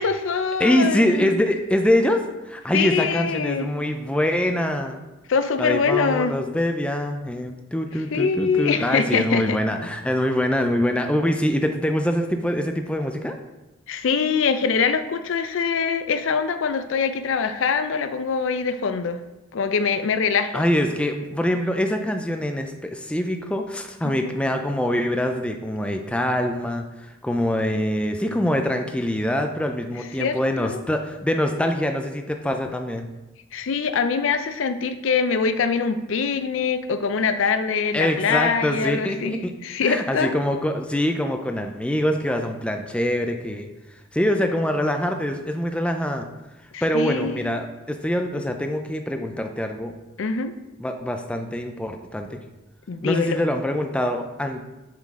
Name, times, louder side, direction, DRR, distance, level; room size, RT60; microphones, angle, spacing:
voice 1, 0.0-1.4 2.7-3.7 5.3-6.4 8.1-9.6 13.9-19.2 19.5-20.7 24.0-24.3 30.2-30.8 33.5-40.4 46.7-47.5 50.2-50.5 52.9-53.4, left 5 dB, 70° left, 10 dB, 0.4 m, -24 dB
voice 2, 0.6-5.0 5.6-13.4 20.5-33.1 37.9-39.5 39.8-43.7 44.1-46.3 46.8-49.9 50.8-52.4 53.0-54.7, left 1 dB, 5° left, 5 dB, 0.4 m, -24 dB
7.4 x 3.9 x 3.6 m, 1.0 s
head